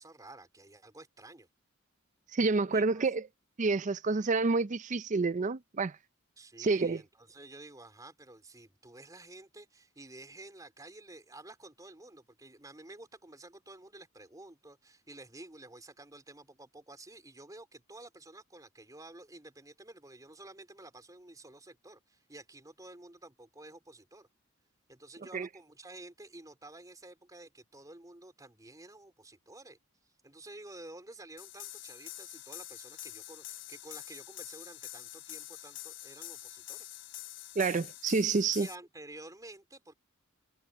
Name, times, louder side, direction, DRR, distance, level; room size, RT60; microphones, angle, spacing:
voice 1, 0.0-1.5 2.7-3.1 6.4-24.3 24.9-29.8 30.2-36.9 38.6-39.9, right 2 dB, 15° right, 3.7 m, -51 dB
voice 2, 2.3-3.2 3.6-5.9 6.6-7.0 25.3-25.5 37.6-38.7, right 4 dB, 35° right, 0.5 m, -28 dB
sound 1, 31.4-38.7, left 14 dB, 60° left, 3.3 m, -46 dB
head